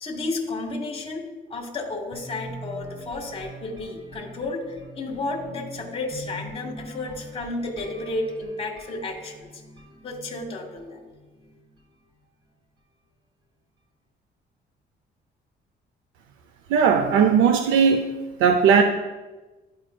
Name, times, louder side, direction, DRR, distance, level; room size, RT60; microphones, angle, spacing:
voice 1, 0.0-1.2 1.5-9.6 10.0-11.0, left 2 dB, 30° left, 1 dB, 1.2 m, -32 dB
sound 1, 2.1-11.9, equal, 25° right, 1.4 m, -43 dB
voice 2, 16.7-18.1 18.4-18.8, right 6 dB, 90° right, 6 dB, 0.5 m, -18 dB
11.5 x 4.6 x 2.2 m, 1.2 s
cardioid pair, 90°, 20 cm